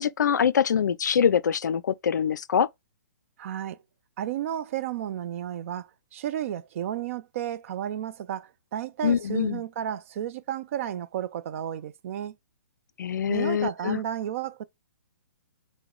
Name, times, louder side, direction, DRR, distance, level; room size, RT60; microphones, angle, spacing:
voice 1, 0.0-2.7 9.0-9.6 13.0-14.0, left 7 dB, 70° left, 0.4 m, -24 dB
voice 2, 3.4-3.8 4.2-12.4 13.3-14.6, right 10 dB, 45° right, 0.4 m, -32 dB
4.6 x 2.1 x 3.6 m
figure-of-eight pair, 130°, 10 cm